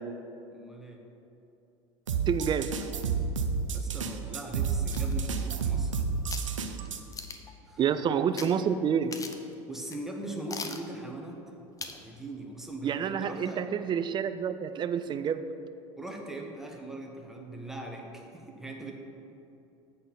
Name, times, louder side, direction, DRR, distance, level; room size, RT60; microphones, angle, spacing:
voice 1, 0.5-1.0 3.7-6.0 7.7-7.8 9.7-11.5 12.0-13.6 16.0-18.9, right 2 dB, ahead, 0 dB, 1.2 m, -40 dB
sound 1, 2.1-7.0, right 5 dB, 90° right, 0.6 m, -30 dB
voice 2, 2.3-2.7 7.8-9.1 12.8-15.4, right 8 dB, 30° right, 11 dB, 0.4 m, -28 dB
sound 2, 4.9-5.9 6.3-6.5 7.1-7.6 8.4-8.5 8.8-8.9 9.1-9.5 9.9-10.0 10.5-10.9 11.8-12.0 12.4-12.5, left 4 dB, 20° left, 0.7 m, -40 dB
7.8 x 4.3 x 6.9 m, 2.8 s
hypercardioid pair, 85°, 16 cm